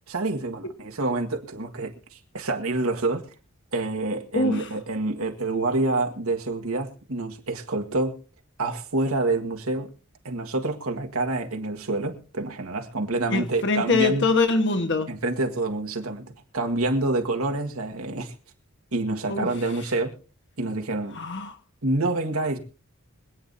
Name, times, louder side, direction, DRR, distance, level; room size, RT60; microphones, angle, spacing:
voice 1, 0.1-3.3 3.7-8.2 8.6-9.9 10.3-14.3 15.1-18.3 18.9-20.2 20.6-21.2 21.8-22.6, right 2 dB, 90° right, 1.8 m, -27 dB
voice 2, 4.3-4.7 13.3-15.1 19.3-19.5 21.1-21.6, left 3 dB, 55° left, 1.4 m, -23 dB
25.0 x 9.1 x 2.8 m
head